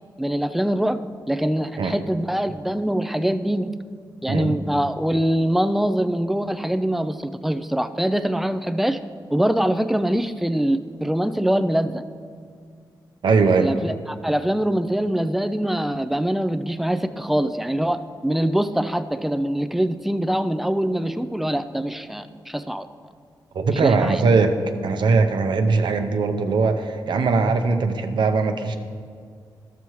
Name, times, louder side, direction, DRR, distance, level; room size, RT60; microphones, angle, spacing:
voice 1, 0.2-1.0 1.3-3.7 4.2-9.0 9.3-12.0 13.6-13.9 14.2-22.9 23.7-24.2, right 1 dB, 5° right, 11 dB, 0.4 m, -23 dB
voice 2, 13.2-13.7 23.5-24.6 24.8-28.8, right 4 dB, 75° right, 7 dB, 0.7 m, -20 dB
13.0 x 6.9 x 3.1 m, 2.1 s
cardioid pair, 85°, 8 cm